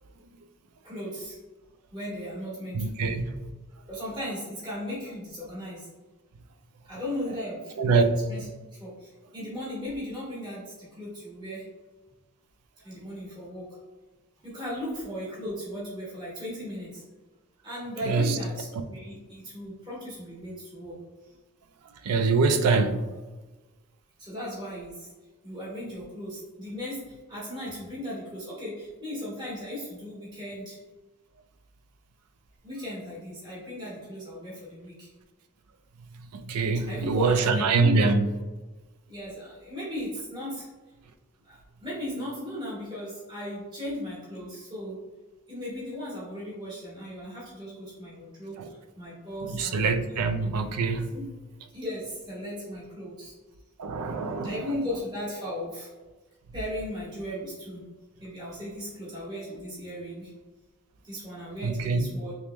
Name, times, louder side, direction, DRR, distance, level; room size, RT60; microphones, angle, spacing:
voice 1, 0.8-1.4 1.9-3.2 3.9-5.9 6.9-8.0 8.3-11.7 12.8-13.8 14.4-17.0 17.6-21.0 24.2-25.1 25.4-30.8 32.6-35.1 36.9-38.1 39.1-40.7 41.4-45.0 45.5-50.2 51.1-51.2 51.7-53.3 54.4-55.9 56.5-57.8 58.2-60.3 61.0-62.3, left 1 dB, 20° right, 1.2 m, -37 dB
voice 2, 2.7-3.2 7.8-8.0 18.1-18.4 22.0-23.1 36.3-38.3 48.6-48.7 49.5-51.1 53.8-54.5 61.6-62.1, right 4 dB, 90° right, 0.4 m, -24 dB
3.4 x 3.0 x 3.0 m
head